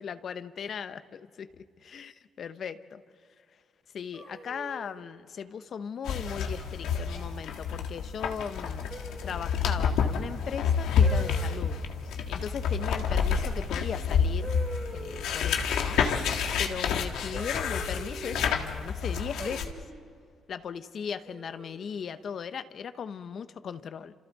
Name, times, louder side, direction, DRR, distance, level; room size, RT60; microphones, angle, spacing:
voice 1, 0.0-3.0 3.9-11.8 12.3-14.5 14.9-16.0 16.6-19.6 20.5-24.1, left 7 dB, 55° left, 12 dB, 0.9 m, -38 dB
sound 1, 4.1-5.0 6.3-6.6 7.1-7.5 8.9-9.5 11.0-11.6 13.5-13.6 14.4-15.4 17.3-18.4 19.4-20.0 21.2-21.8, right 3 dB, 40° right, 3.6 m, -43 dB
sound 2, 6.1-19.7, left 6 dB, 85° left, 1.7 m, -29 dB
29.5 x 27.0 x 4.1 m, 2.3 s
cardioid pair, 90°, 0 cm